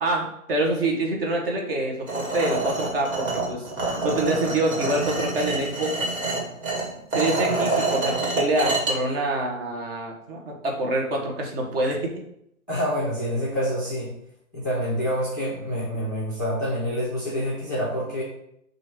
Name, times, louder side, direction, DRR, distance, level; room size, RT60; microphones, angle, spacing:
voice 1, 0.0-6.2 7.1-12.1, right 1 dB, 45° right, 0 dB, 1.0 m, -26 dB
sound 1, 2.1-8.9, right 3 dB, 85° right, 1.5 m, -27 dB
voice 2, 12.7-14.1 14.5-18.2, equal, 15° left, -9 dB, 0.3 m, -27 dB
3.1 x 2.5 x 4.4 m, 0.76 s
hypercardioid pair, 135°, 41 cm